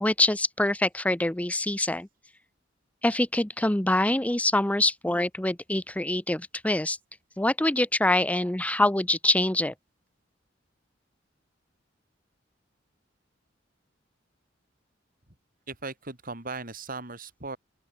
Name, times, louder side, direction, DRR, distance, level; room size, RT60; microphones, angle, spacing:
voice 1, 0.0-2.1 3.0-7.0 7.4-9.7, left 1 dB, 10° left, 0.6 m, -25 dB
voice 2, 15.7-17.6, right 3 dB, 50° right, 4.3 m, -37 dB
open air
head